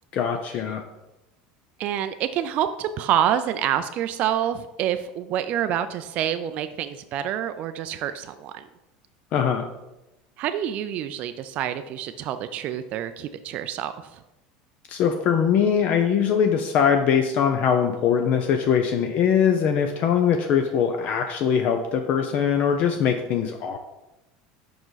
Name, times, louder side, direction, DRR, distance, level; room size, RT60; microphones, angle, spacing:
voice 1, 0.1-0.8 9.3-9.7 14.9-23.8, left 7 dB, 50° left, 5 dB, 0.5 m, -22 dB
voice 2, 1.8-8.7 10.4-14.2, right 10 dB, 50° right, 10 dB, 0.3 m, -27 dB
4.9 x 4.9 x 3.9 m, 0.96 s
supercardioid pair, 120°, 3 cm